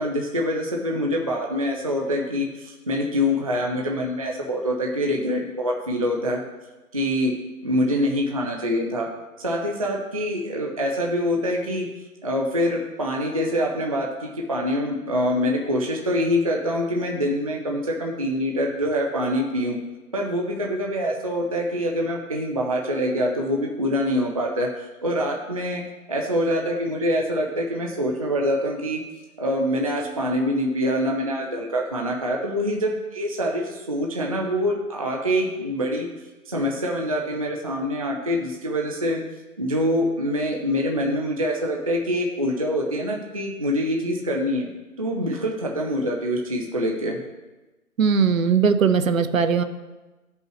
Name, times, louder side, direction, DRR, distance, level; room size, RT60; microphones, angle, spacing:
voice 1, 0.0-6.4 6.9-7.3 7.6-11.9 12.2-19.8 20.1-24.7 25.0-25.8 26.1-29.0 29.4-36.1 36.5-39.2 39.6-44.7 45.0-47.2, equal, 25° right, 0 dB, 0.4 m, -25 dB
voice 2, 48.0-49.6, right 6 dB, 65° right, 9 dB, 0.7 m, -19 dB
13.0 x 5.4 x 3.1 m, 1.1 s
figure-of-eight pair, 145°, 44 cm